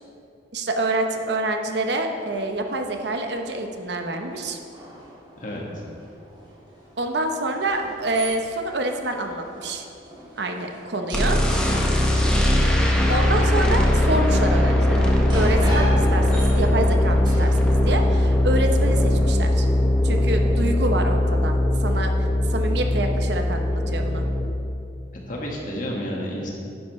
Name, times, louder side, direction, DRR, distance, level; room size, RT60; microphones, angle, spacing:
voice 1, 0.5-4.6 7.0-9.8 10.4-11.4 13.1-19.7 20.0-24.2, right 2 dB, 70° right, 4 dB, 0.9 m, -27 dB
sound 1, 2.2-18.4, equal, 25° right, 2.7 m, -38 dB
voice 2, 5.4-5.8 25.3-26.5, equal, 45° left, -2 dB, 1.7 m, -31 dB
sound 2, 11.1-24.5, left 1 dB, 5° left, 1.1 m, -20 dB
11.0 x 10.5 x 3.2 m, 2.5 s
head